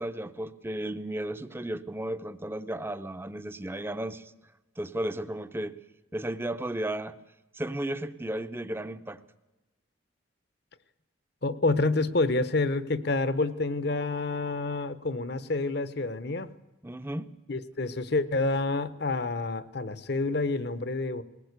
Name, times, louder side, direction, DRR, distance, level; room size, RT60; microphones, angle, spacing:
voice 1, 0.0-4.3 4.8-5.7 6.1-7.2 7.5-9.2 16.8-17.3, right 1 dB, 10° right, 13 dB, 0.6 m, -34 dB
voice 2, 11.4-16.5 17.5-21.2, left 2 dB, 55° left, 15 dB, 0.9 m, -28 dB
20.0 x 18.0 x 8.2 m, 1.1 s
head